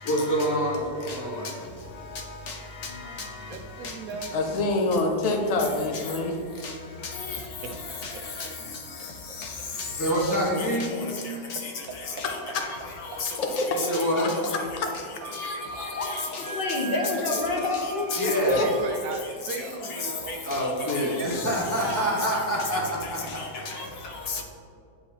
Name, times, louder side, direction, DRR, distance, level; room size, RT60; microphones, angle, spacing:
voice 1, 0.0-1.5 9.9-11.0 13.7-14.3 18.2-18.6 20.4-23.4, equal, 15° left, -5 dB, 1.2 m, -26 dB
voice 2, 2.8-3.3 3.8-3.9 4.2-4.3 6.6-6.7 7.0-7.4 8.0-8.1 8.4-8.5 9.4-9.9 10.2-10.7 11.0-11.1 11.5-11.6 12.2-12.7 13.0-14.4 15.3-16.5 17.3-17.4 18.1-18.4 18.7-18.8 19.5-19.6 19.9-22.0 22.7-22.8 23.4-24.4, left 4 dB, 85° left, 0 dB, 1.5 m, -35 dB
voice 3, 3.5-5.0 7.4-7.7 14.5-14.6 15.3-15.4 18.6-22.3 22.6-22.7, right 4 dB, 70° right, 4 dB, 1.1 m, -38 dB
voice 4, 4.3-6.3 13.4-13.7 14.2-14.3 16.0-16.1 17.3-17.4 18.2-18.7, left 2 dB, 65° left, 3 dB, 0.3 m, -26 dB
Wind instrument woodwind instrument, 15.2-18.9, right 2 dB, 90° right, 1.4 m, -38 dB
voice 5, 16.5-18.1, left 2 dB, 45° left, 0 dB, 0.8 m, -27 dB
9.9 x 4.0 x 2.9 m, 2.4 s
omnidirectional pair, 1.6 m